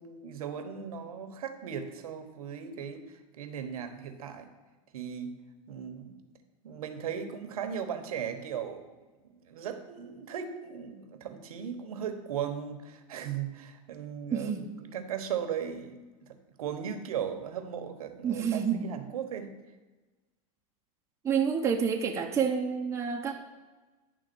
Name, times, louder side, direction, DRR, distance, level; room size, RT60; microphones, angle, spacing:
voice 1, 0.0-4.5 4.9-5.3 5.7-6.2 6.6-8.9 9.3-19.5, right 8 dB, 90° right, 7 dB, 1.1 m, -37 dB
voice 2, 14.3-14.6 18.2-18.9 21.2-23.3, right 7 dB, 15° right, 0 dB, 0.8 m, -28 dB
10.0 x 3.6 x 6.9 m, 1.2 s
supercardioid pair, 130°, 18 cm